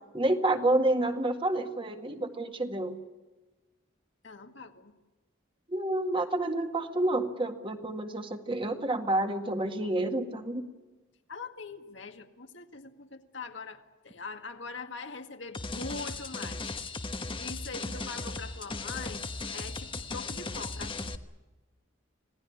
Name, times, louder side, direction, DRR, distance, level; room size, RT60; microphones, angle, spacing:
voice 1, 0.1-3.0 5.7-10.6, right 1 dB, 25° right, 6 dB, 1.9 m, -29 dB
voice 2, 4.2-4.9 11.3-16.6 17.4-19.2 19.5-21.1, left 4 dB, 70° left, 6 dB, 1.9 m, -42 dB
sound 1, 15.5-21.2, left 3 dB, 25° left, 1.2 m, -37 dB
26.5 x 18.0 x 9.8 m, 1.2 s
head